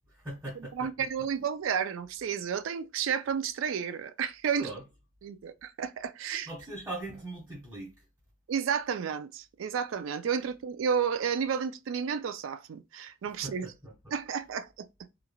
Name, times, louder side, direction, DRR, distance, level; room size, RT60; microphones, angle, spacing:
voice 1, 0.1-1.1 4.6-4.8 6.5-8.0 13.4-14.1, right 2 dB, 10° right, 1.2 m, -41 dB
voice 2, 0.7-4.7 5.2-6.5 8.5-13.7 14.1-15.1, right 7 dB, 85° right, 0.4 m, -32 dB
3.2 x 2.3 x 2.2 m
head